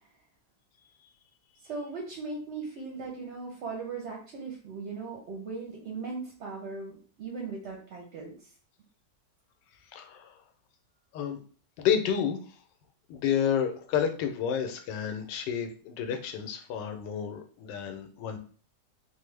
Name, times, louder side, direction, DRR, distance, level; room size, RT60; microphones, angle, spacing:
voice 1, 1.6-8.3, right 4 dB, 60° right, -2 dB, 0.7 m, -38 dB
voice 2, 9.9-10.3 11.1-11.4 11.8-12.4 13.1-18.4, left 8 dB, 90° left, 6 dB, 1.2 m, -30 dB
3.2 x 2.0 x 3.2 m, 0.42 s
omnidirectional pair, 1.9 m